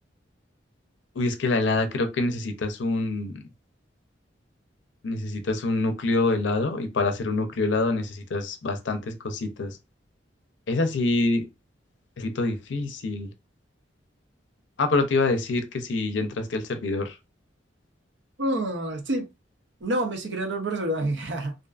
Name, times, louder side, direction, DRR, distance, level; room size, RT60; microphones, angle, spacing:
voice 1, 1.2-3.4 5.0-9.8 10.7-11.4 12.2-13.3 14.8-17.2, left 2 dB, 70° left, 0.5 m, -26 dB
voice 2, 18.4-19.3 19.8-21.6, right 1 dB, 70° right, 0.7 m, -27 dB
2.5 x 2.4 x 2.3 m
head